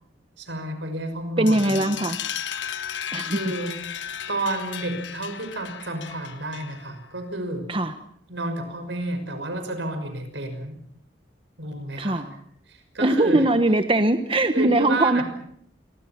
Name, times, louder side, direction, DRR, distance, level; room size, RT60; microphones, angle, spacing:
voice 1, 0.4-1.9 3.2-3.8 4.3-7.7 8.3-10.8 11.6-12.2 12.7-13.5 14.5-15.2, right 2 dB, 75° right, 7 dB, 6.0 m, -31 dB
voice 2, 1.4-2.2 3.1-3.4 7.7-7.9 12.0-12.3 13.0-15.2, right 1 dB, 30° right, 8 dB, 1.2 m, -21 dB
sound 1, 1.5-7.0, left 9 dB, 80° left, 1.5 m, -35 dB
28.0 x 23.5 x 6.0 m, 0.67 s
head